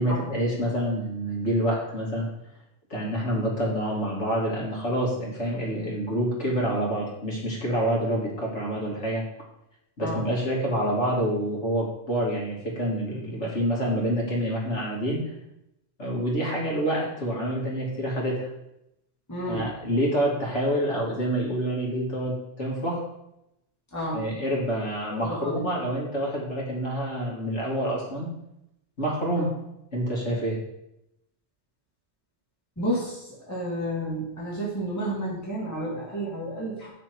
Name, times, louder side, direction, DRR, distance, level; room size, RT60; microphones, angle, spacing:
voice 1, 0.0-2.3 2.9-9.2 10.0-15.2 16.0-18.5 19.5-23.0 24.1-28.3 29.0-29.5 29.9-30.6, right 1 dB, 80° left, -4 dB, 3.0 m, -27 dB
voice 2, 19.3-19.7 23.9-24.3 25.1-25.7 32.8-36.9, right 1 dB, 15° left, -5 dB, 2.2 m, -31 dB
7.6 x 6.9 x 4.7 m, 0.84 s
omnidirectional pair, 1.2 m